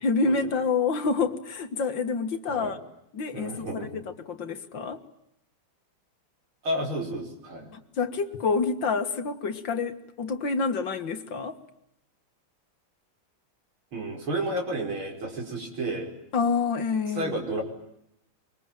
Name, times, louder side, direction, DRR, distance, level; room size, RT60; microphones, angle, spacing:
voice 1, 0.0-2.8 3.1-5.0 7.7-11.6 16.3-17.3, left 4 dB, 65° left, 9 dB, 2.3 m, -28 dB
voice 2, 3.3-4.0 6.6-7.7 13.9-16.1 17.1-17.6, right 1 dB, 85° right, 2 dB, 6.1 m, -31 dB
25.5 x 24.0 x 9.1 m, 0.77 s
omnidirectional pair, 2.2 m